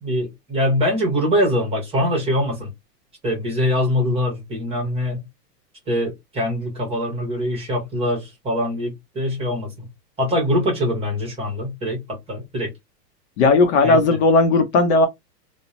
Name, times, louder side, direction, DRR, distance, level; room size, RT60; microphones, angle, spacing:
voice 1, 0.0-2.7 3.2-5.2 5.9-9.9 10.2-12.7 13.8-14.2, equal, 10° right, 0.9 m, -23 dB
voice 2, 13.4-15.1, left 3 dB, 45° left, 0.6 m, -16 dB
2.8 x 2.1 x 2.3 m
supercardioid pair, 150°, 48 cm